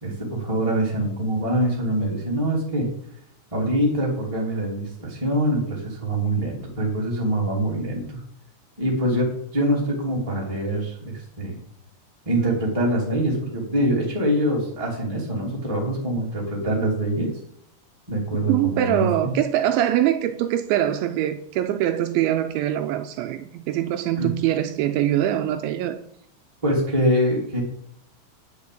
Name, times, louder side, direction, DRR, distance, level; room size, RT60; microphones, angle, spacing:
voice 1, 0.0-2.9 3.5-8.2 8.8-9.3 9.5-11.6 12.2-17.3 18.1-19.3 24.2-24.3 26.6-27.6, right 1 dB, 15° right, 1.2 m, -24 dB
voice 2, 18.5-26.0, right 12 dB, 85° right, 2.7 m, -23 dB
10.5 x 6.6 x 8.5 m
omnidirectional pair, 5.9 m